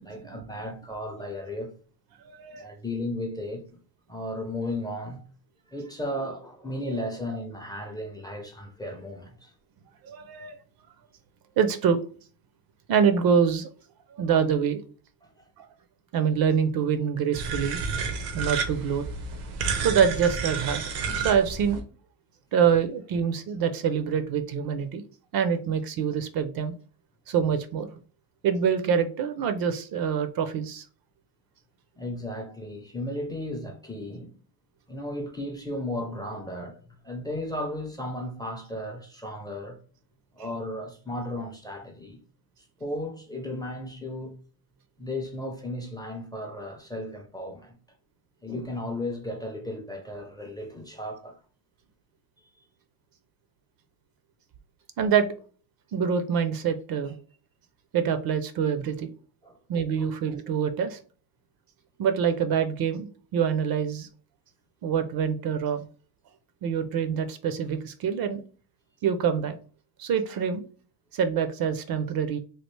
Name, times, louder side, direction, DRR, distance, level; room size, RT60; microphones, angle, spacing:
voice 1, 0.0-1.7 2.5-3.6 4.1-5.2 5.7-9.5 15.2-15.5 32.0-34.3 34.9-39.8 40.3-42.2 42.8-44.3 45.0-47.8 48.4-51.4 59.4-59.6 60.0-60.1, left 1 dB, 10° left, 0.4 m, -35 dB
voice 2, 2.2-2.7 7.0-7.1 10.0-10.6 11.6-12.0 12.9-13.7 14.1-14.8 15.6-15.7 16.1-17.8 18.3-19.0 19.8-20.8 21.1-21.8 22.5-25.0 25.3-26.7 27.3-28.0 28.4-30.8 55.0-55.3 55.9-57.2 57.9-59.1 59.7-61.0 62.0-64.1 64.8-65.9 66.6-68.4 69.0-69.6 70.0-70.6 71.1-72.4, right 7 dB, 50° right, 0.5 m, -25 dB
sound 1, 17.3-21.8, right 5 dB, 85° right, 0.8 m, -31 dB
3.2 x 2.3 x 3.1 m
cardioid pair, 115°, 46 cm